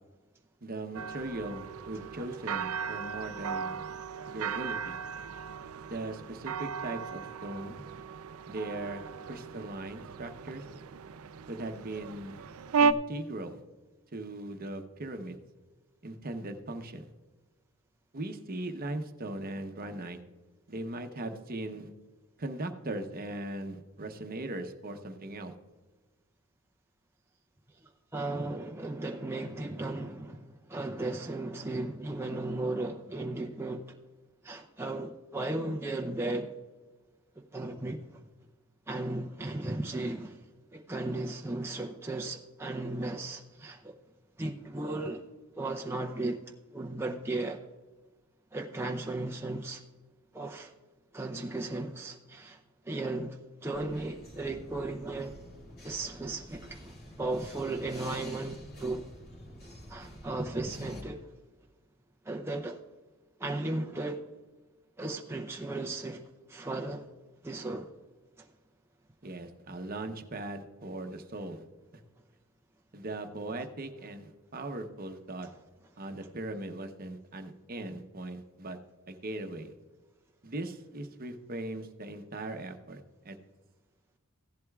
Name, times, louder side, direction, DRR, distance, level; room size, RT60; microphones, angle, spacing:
voice 1, 0.6-3.9 4.3-5.0 5.9-7.8 8.5-10.6 11.5-12.4 12.8-13.6 14.1-15.4 16.0-17.1 18.1-20.2 20.7-21.9 22.4-25.5 69.2-71.6 72.9-75.5 76.0-78.8 79.1-79.7 80.4-83.4, right 2 dB, 45° right, 6 dB, 0.9 m, -39 dB
sound 1, 0.9-12.9, right 5 dB, 80° right, 0.5 m, -35 dB
voice 2, 27.8-33.8 34.4-36.5 37.5-38.2 38.9-40.5 40.7-43.9 44.4-45.3 45.5-46.4 46.7-47.6 48.5-49.8 50.3-50.7 51.1-52.6 52.8-55.4 55.8-59.0 59.9-61.3 62.2-62.8 63.4-64.2 65.0-67.1 67.4-67.9 68.4-68.5, right 2 dB, 10° right, 2 dB, 0.6 m, -35 dB
sound 2, 53.7-61.0, equal, 45° left, 2.7 m, -49 dB
16.0 x 11.0 x 2.4 m, 1.3 s
head